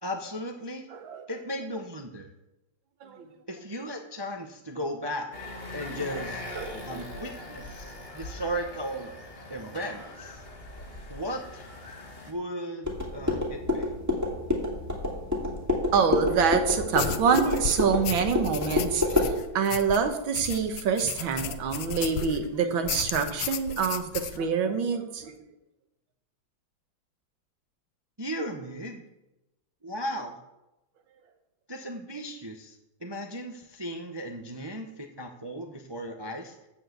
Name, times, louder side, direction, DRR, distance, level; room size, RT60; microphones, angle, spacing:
voice 1, 0.0-0.9 1.3-2.3 3.5-5.3 5.7-6.4 6.8-9.1 9.5-10.4 10.8-11.7 12.3-13.9 28.2-29.0 29.8-30.4 31.7-36.6, equal, 35° right, 3 dB, 0.4 m, -36 dB
voice 2, 0.9-1.3 3.0-3.3 5.8-6.2 6.5-7.1 15.9-25.3, right 6 dB, 80° right, 7 dB, 1.9 m, -26 dB
sound 1, 5.3-12.3, left 2 dB, 30° left, 1.5 m, -41 dB
sound 2, 12.8-19.3, left 2 dB, 10° right, 2.2 m, -28 dB
sound 3, 16.9-22.5 22.9-24.4, left 9 dB, 80° left, 1.4 m, -35 dB
12.5 x 4.8 x 8.0 m, 0.96 s
omnidirectional pair, 2.1 m